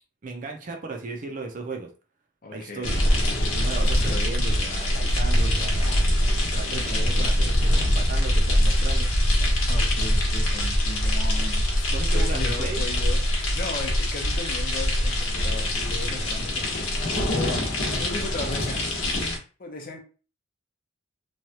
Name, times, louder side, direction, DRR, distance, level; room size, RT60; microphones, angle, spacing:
voice 1, 0.2-1.9 2.5-3.0 3.5-5.9 6.5-9.1 11.9-12.8, right 3 dB, 40° right, 0.5 m, -35 dB
voice 2, 2.4-3.1 3.8-4.3 6.5-7.4 9.7-11.8 12.1-18.8 19.6-20.0, left 2 dB, 45° left, 0.7 m, -37 dB
sound 1, 2.8-19.4, left 1 dB, 90° left, 1.0 m, -23 dB
3.1 x 2.3 x 2.8 m
head